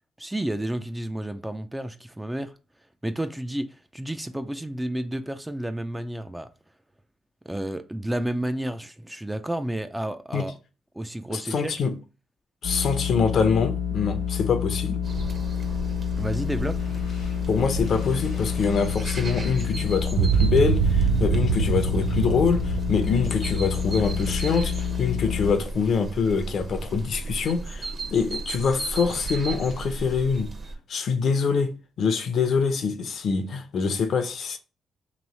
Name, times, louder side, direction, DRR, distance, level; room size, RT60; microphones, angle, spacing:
voice 1, 0.2-2.5 3.0-6.5 7.5-10.5 10.9-11.8 16.2-16.8, right 1 dB, 10° right, 0.4 m, -31 dB
voice 2, 11.3-11.9 12.6-15.0 17.5-30.5 30.9-34.6, left 5 dB, 60° left, 0.6 m, -25 dB
sound 1, 12.6-25.5, left 8 dB, 80° left, 1.1 m, -28 dB
sound 2, 15.0-30.8, right 2 dB, 40° right, 0.9 m, -35 dB
sound 3, 20.2-24.5, right 8 dB, 90° right, 0.3 m, -24 dB
3.1 x 3.0 x 4.1 m
cardioid pair, 90°, 0 cm